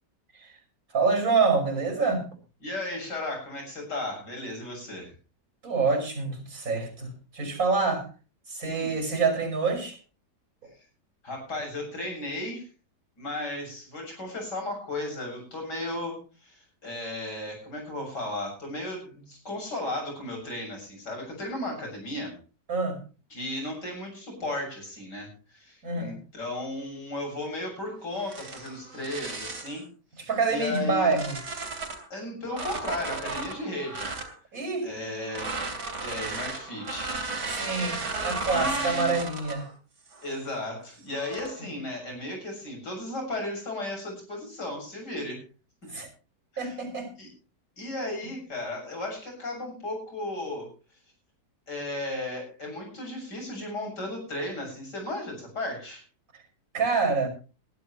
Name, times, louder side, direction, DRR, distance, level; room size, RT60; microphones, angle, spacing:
voice 1, 0.9-2.3 5.6-8.1 8.5-10.0 22.7-23.0 25.8-26.2 30.3-31.4 34.5-34.9 37.5-39.7 45.9-46.1 46.6-47.1 56.7-57.3, right 4 dB, 55° right, 5 dB, 6.1 m, -26 dB
voice 2, 2.6-5.1 8.6-8.9 11.2-12.7 13.2-22.4 23.3-29.9 30.5-31.1 32.1-34.1 34.8-35.6 36.0-37.5 38.5-39.1 40.2-45.4 46.5-46.7 47.2-47.3 47.8-50.7 51.7-56.0, left 1 dB, 85° left, 1 dB, 7.9 m, -35 dB
sound 1, 28.2-29.8 30.4-32.1 32.5-34.3 35.2-39.7 40.1-40.4 41.1-41.6, right 3 dB, 80° right, 3.7 m, -35 dB
20.5 x 12.0 x 3.2 m, 0.35 s
omnidirectional pair, 1.8 m